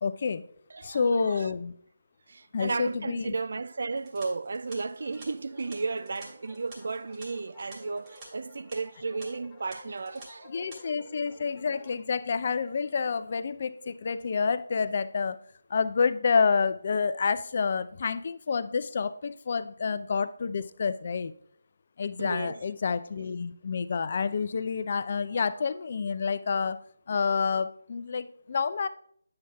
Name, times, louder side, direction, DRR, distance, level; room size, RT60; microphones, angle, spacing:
voice 1, 0.0-0.4 0.8-1.7 2.5-3.3 10.5-15.4 15.7-21.3 22.0-26.8 27.1-28.9, left 5 dB, 45° left, 0.4 m, -28 dB
voice 2, 0.7-1.5 2.3-10.5 22.2-22.6, right 4 dB, 55° right, 0.3 m, -34 dB
sound 1, 4.0-8.3 8.5-8.8 9.2-9.3 9.7-10.3 10.5-10.8, right 2 dB, 25° right, 2.0 m, -50 dB
sound 2, 4.6-12.0, left 1 dB, 10° left, 1.1 m, -53 dB
9.6 x 7.6 x 2.3 m
figure-of-eight pair, 155°, 0 cm